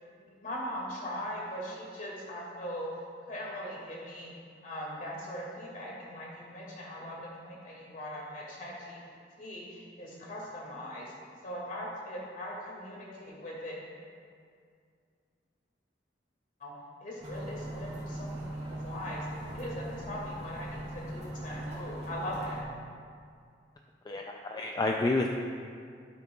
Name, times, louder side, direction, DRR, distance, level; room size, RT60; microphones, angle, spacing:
voice 1, 0.2-2.9 3.3-4.3 4.6-9.0 9.4-11.1 11.4-13.8 16.6-16.7 17.0-18.4 18.7-19.3 19.5-22.6, equal, 50° left, -4 dB, 2.1 m, -40 dB
sound 1, 17.2-22.6, right 1 dB, 35° right, 1.8 m, -40 dB
voice 2, 24.1-25.3, left 2 dB, 25° left, 2 dB, 0.3 m, -29 dB
12.0 x 8.5 x 2.3 m, 2.2 s
head